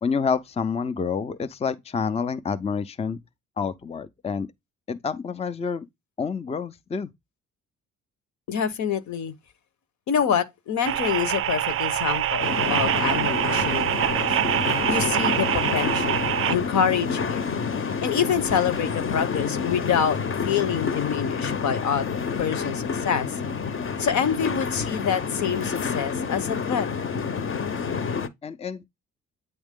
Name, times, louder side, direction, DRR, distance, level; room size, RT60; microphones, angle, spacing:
voice 1, 0.0-3.2 3.6-4.5 4.9-5.9 6.2-7.1 28.4-28.8, left 5 dB, 20° left, 0.5 m, -28 dB
voice 2, 8.5-9.3 10.1-14.4 14.8-17.4 18.0-23.3 24.0-26.9, left 7 dB, 70° left, 1.1 m, -26 dB
sound 1, 10.8-16.6, right 12 dB, 45° right, 0.4 m, -25 dB
sound 2, 12.4-28.3, left 5 dB, 45° left, 0.8 m, -28 dB
8.9 x 3.0 x 3.6 m
cardioid pair, 90°, 30 cm